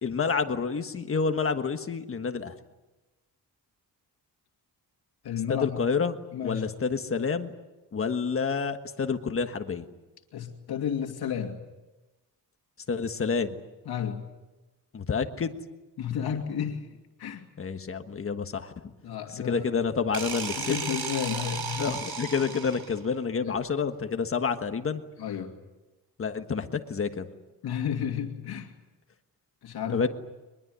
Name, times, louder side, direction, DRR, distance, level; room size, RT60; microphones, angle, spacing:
voice 1, 0.0-2.5 5.5-6.2 6.4-7.5 7.9-9.8 12.9-13.6 14.9-15.6 17.6-18.7 19.3-20.7 21.8-25.0 26.2-27.3 29.9-30.1, left 5 dB, 35° left, 7 dB, 1.4 m, -28 dB
voice 2, 5.2-5.8 6.3-6.7 10.3-11.6 13.9-14.2 16.0-16.9 17.2-17.5 19.0-19.6 20.6-22.0 22.4-22.5 23.4-23.5 25.2-25.5 27.6-28.7 29.6-30.1, left 8 dB, 75° left, 3 dB, 2.7 m, -32 dB
sound 1, 20.1-23.1, right 6 dB, 75° right, 5.3 m, -34 dB
23.5 x 21.5 x 9.5 m, 1.1 s
wide cardioid pair, 175°, 38 cm